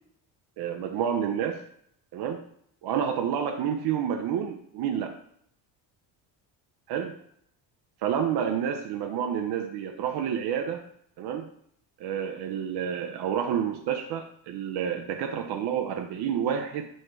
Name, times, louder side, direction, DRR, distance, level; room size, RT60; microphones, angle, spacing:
voice 1, 0.6-1.6 2.1-2.4 2.8-5.2 6.9-7.1 8.0-10.8 11.2-11.5 12.0-16.9, right 8 dB, 60° right, 3 dB, 0.5 m, -29 dB
6.4 x 2.2 x 3.0 m, 0.68 s
cardioid pair, 90°, 47 cm